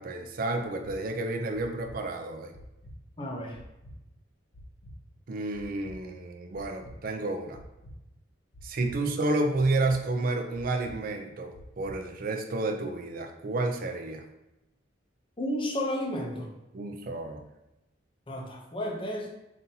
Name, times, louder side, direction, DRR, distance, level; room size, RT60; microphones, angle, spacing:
voice 1, 0.0-2.6 5.3-7.6 8.6-14.2 16.7-17.4, right 2 dB, 45° right, 4 dB, 0.4 m, -30 dB
sound 1, 0.8-0.9 1.5-1.9 2.5-2.9 3.5-3.9 4.5-4.9 5.5-5.9 6.5-6.9 7.5-7.9 8.5-8.9 9.5-9.9 10.5-10.9 11.5-11.9, equal, 80° left, 1.3 m, -48 dB
voice 2, 3.2-3.6 9.0-9.1 15.4-16.5 18.3-19.3, left 1 dB, 25° left, 0 dB, 0.6 m, -32 dB
5.3 x 2.6 x 2.7 m, 0.94 s
head